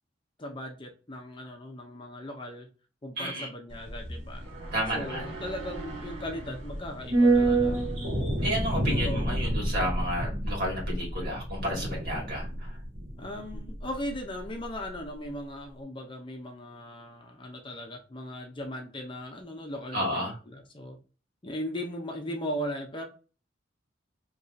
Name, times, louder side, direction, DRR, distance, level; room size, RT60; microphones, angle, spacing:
voice 1, 0.4-2.7 3.0-4.4 4.9-7.8 9.0-9.3 13.2-21.0 21.4-23.0, equal, 25° left, 3 dB, 0.6 m, -38 dB
voice 2, 3.2-3.5 4.7-5.3 8.4-12.8 19.9-20.4, equal, 55° right, -1 dB, 1.8 m, -31 dB
sound 1, 3.7-14.2 14.4-14.5, right 2 dB, 75° right, 1.7 m, -29 dB
3.0 x 2.7 x 3.9 m, 0.35 s
head